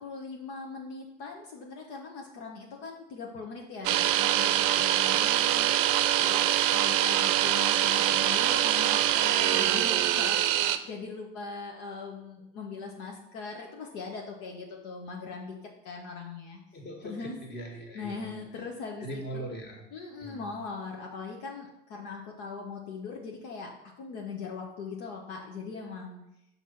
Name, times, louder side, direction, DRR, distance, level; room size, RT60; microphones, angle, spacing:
voice 1, 0.0-5.7 6.2-15.6 15.8-16.6 17.0-17.4 17.9-19.5 19.9-26.2, left 4 dB, 70° left, -1 dB, 1.1 m, -40 dB
sound 1, 3.8-10.8, right 12 dB, 65° right, 0.6 m, -24 dB
voice 2, 16.7-18.4 19.0-19.8 20.2-20.6, right 1 dB, 35° left, 2 dB, 1.8 m, -40 dB
5.9 x 4.3 x 5.7 m, 0.86 s
hypercardioid pair, 75°, 29 cm